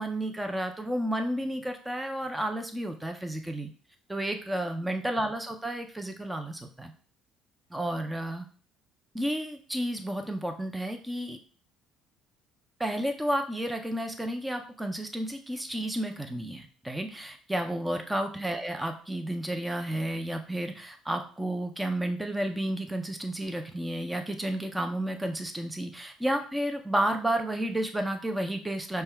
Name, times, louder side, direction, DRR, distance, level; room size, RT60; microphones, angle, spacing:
voice 1, 0.0-3.7 4.1-6.9 7.7-8.4 9.1-11.4 12.8-29.0, right 1 dB, 5° right, 5 dB, 0.5 m, -31 dB
5.4 x 2.2 x 4.4 m, 0.42 s
cardioid pair, 125°, 0 cm